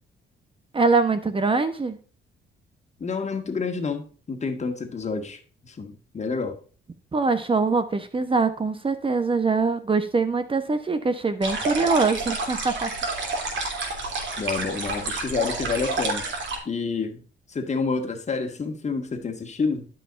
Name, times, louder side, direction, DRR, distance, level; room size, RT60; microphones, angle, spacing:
voice 1, 0.7-2.0 7.1-13.3, right 4 dB, 25° right, 1.0 m, -23 dB
voice 2, 3.0-6.6 14.4-16.3 16.7-17.2 17.5-19.9, left 4 dB, 35° left, 1.8 m, -29 dB
sound 1, 11.4-16.6, right 3 dB, 65° right, 3.0 m, -29 dB
12.5 x 5.7 x 2.5 m
cardioid pair, 90°, 20 cm